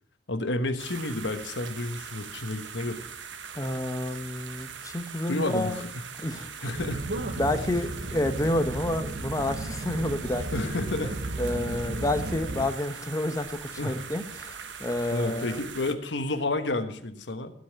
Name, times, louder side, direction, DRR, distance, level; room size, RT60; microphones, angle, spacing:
voice 1, 0.3-3.0 5.3-5.7 6.2-7.4 10.5-11.2 13.8-14.0 15.1-17.5, left 2 dB, 75° left, 8 dB, 1.3 m, -31 dB
sound 1, 0.8-15.9, right 7 dB, 85° right, 1.1 m, -42 dB
voice 2, 3.5-5.9 6.2-6.5 7.3-10.7 11.0-11.1 11.4-15.6, left 1 dB, 20° left, 8 dB, 1.0 m, -29 dB
sound 2, 6.7-12.7, right 2 dB, 55° right, 0.8 m, -34 dB
15.5 x 5.5 x 8.7 m, 0.65 s
head